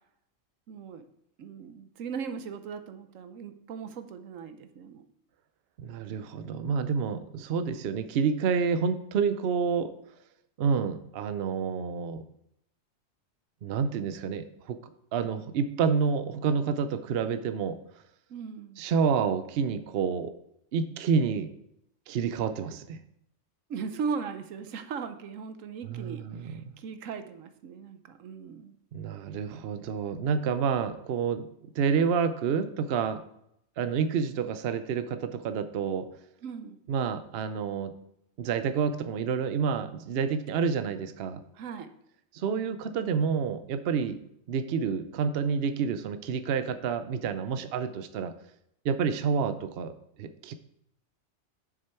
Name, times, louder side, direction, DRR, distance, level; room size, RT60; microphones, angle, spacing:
voice 1, 0.7-1.0 1.4-5.1 18.3-18.8 23.7-28.7 36.4-36.8 41.5-41.9, right 6 dB, 80° right, 9 dB, 1.1 m, -38 dB
voice 2, 5.8-9.9 10.6-12.2 13.6-14.8 15.1-17.8 18.8-20.3 20.7-21.5 22.1-23.0 25.9-26.7 28.9-31.5 31.8-33.2 33.8-36.1 36.9-37.9 38.4-41.4 42.3-44.2 44.5-48.3 48.8-49.9 50.2-50.5, right 6 dB, 60° right, 10 dB, 0.8 m, -29 dB
7.4 x 6.6 x 4.4 m, 0.76 s
omnidirectional pair, 1.3 m